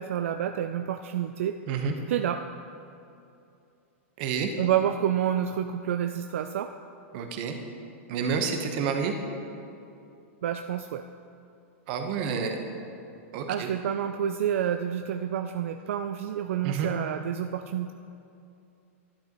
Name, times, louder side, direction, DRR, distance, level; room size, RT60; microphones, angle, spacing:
voice 1, 0.0-1.6 2.1-2.5 4.6-6.7 10.4-11.0 13.5-17.9, right 10 dB, 70° right, 8 dB, 0.3 m, -29 dB
voice 2, 4.2-4.5 7.1-7.6 8.1-9.1 11.9-12.6 13.3-13.7 16.6-16.9, right 6 dB, 40° right, 5 dB, 1.0 m, -29 dB
11.5 x 11.0 x 3.0 m, 2.6 s
supercardioid pair, 160°, 7 cm